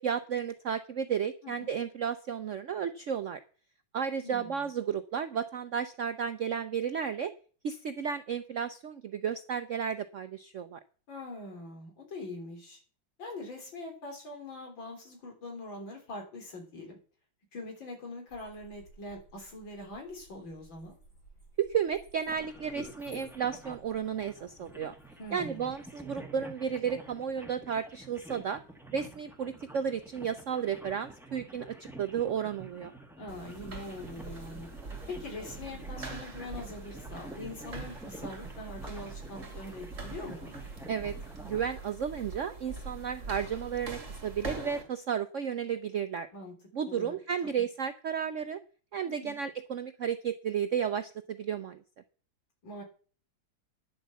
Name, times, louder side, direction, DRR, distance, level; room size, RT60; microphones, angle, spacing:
voice 1, 0.0-3.4 3.9-7.3 7.6-10.8 21.6-24.9 25.3-28.6 28.9-32.9 40.9-41.1 41.4-46.3 46.7-48.6 48.9-51.8, right 7 dB, 70° right, 10 dB, 0.7 m, -33 dB
voice 2, 4.2-4.7 11.1-12.8 13.2-17.0 17.5-21.0 25.2-25.7 33.2-34.7 35.1-40.5 46.3-46.5 46.9-47.2 47.4-47.7 49.0-49.4 52.6-52.8, left 2 dB, 80° left, 2 dB, 4.4 m, -43 dB
sound 1, 18.3-25.8, right 2 dB, 40° left, 6.9 m, -59 dB
sound 2, 22.2-41.6, right 2 dB, ahead, 1.4 m, -48 dB
sound 3, 33.3-44.8, right 3 dB, 40° right, 2.8 m, -43 dB
10.5 x 7.6 x 7.1 m, 0.40 s
omnidirectional pair, 2.1 m